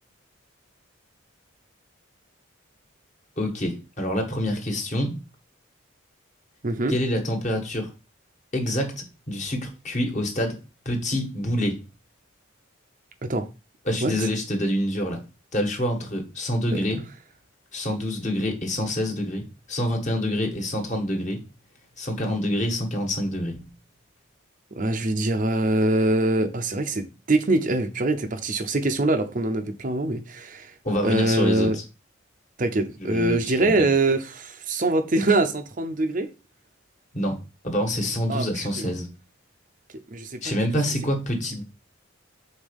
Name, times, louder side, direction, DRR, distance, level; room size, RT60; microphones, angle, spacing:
voice 1, 3.4-5.2 6.9-7.9 8.5-10.6 10.8-11.8 13.9-15.2 15.5-17.0 17.7-21.4 22.0-23.6 30.8-31.8 33.0-33.7 37.1-37.4 37.6-39.1 40.4-41.6, left 1 dB, 35° left, 1.5 m, -26 dB
voice 2, 6.6-6.9 13.2-13.5 14.0-14.1 16.7-16.8 24.7-30.7 31.0-31.8 32.6-36.3 38.3-38.9 40.1-40.5, right 2 dB, 40° right, 0.7 m, -24 dB
5.4 x 4.0 x 5.3 m
head